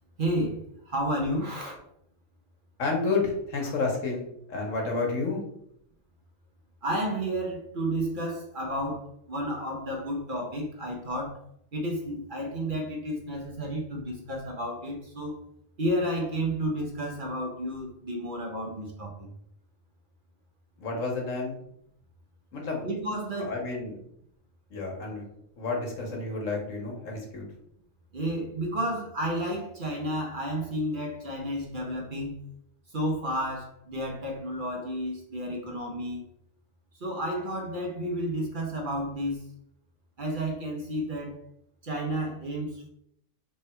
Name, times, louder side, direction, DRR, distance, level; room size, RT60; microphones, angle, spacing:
voice 1, 0.2-1.7 6.8-11.4 11.7-15.4 15.8-19.3 22.8-23.5 28.1-32.4 32.9-36.2 36.9-39.4 40.2-41.4 41.8-42.9, equal, 45° right, 0 dB, 0.8 m, -31 dB
voice 2, 2.8-5.4 20.8-21.6 22.5-22.9 23.4-24.0 24.7-25.2 25.6-27.4, left 3 dB, 80° left, 0 dB, 1.5 m, -30 dB
3.3 x 3.3 x 4.3 m, 0.74 s
omnidirectional pair, 1.3 m